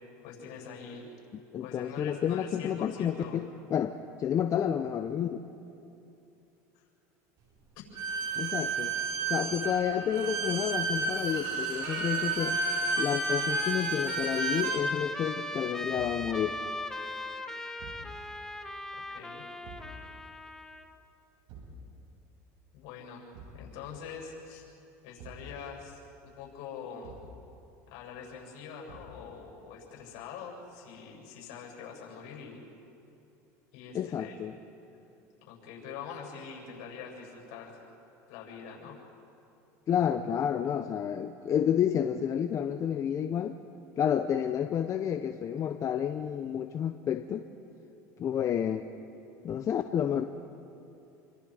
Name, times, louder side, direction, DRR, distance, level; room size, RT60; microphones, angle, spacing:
voice 1, 0.2-1.1 1.6-3.4 6.7-6.8 19.1-19.4 22.7-23.2 23.5-24.7 25.0-27.2 27.9-32.6 33.7-34.4 35.5-37.8 38.3-39.0, left 6 dB, 70° left, -1 dB, 7.9 m, -44 dB
voice 2, 1.5-5.4 8.4-8.9 9.3-12.6 13.0-16.6 33.9-34.5 39.9-43.6 44.0-47.5 48.2-48.8 49.4-50.2, left 9 dB, 40° left, 8 dB, 0.9 m, -30 dB
Bowed string instrument, 7.9-14.8, right 3 dB, 55° right, 5.4 m, -31 dB
Trumpet, 11.8-20.9, left 1 dB, 5° left, 1.4 m, -39 dB
Thump thud, 15.9-16.3 17.8-18.1 19.6-20.0 21.5-21.8 23.3-23.7 25.2-25.5 27.0-27.4 28.9-29.2, right 3 dB, 70° right, 7.0 m, -48 dB
28.5 x 25.0 x 5.1 m, 2.8 s
supercardioid pair, 105°, 8 cm